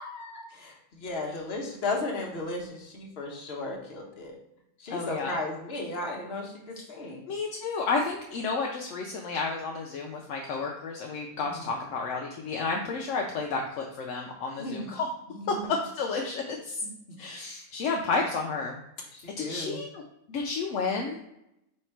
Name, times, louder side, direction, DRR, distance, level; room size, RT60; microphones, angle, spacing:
voice 1, 0.0-4.3 4.8-7.3 11.4-11.7 14.6-14.9 15.3-15.7 16.8-16.9 19.1-19.8, left 2 dB, 45° left, 0 dB, 1.1 m, -35 dB
voice 2, 4.9-5.4 7.3-15.1 15.5-16.8 17.2-18.8 19.3-21.2, left 4 dB, 65° left, 1 dB, 0.8 m, -31 dB
4.3 x 2.8 x 4.4 m, 0.83 s
omnidirectional pair, 1.6 m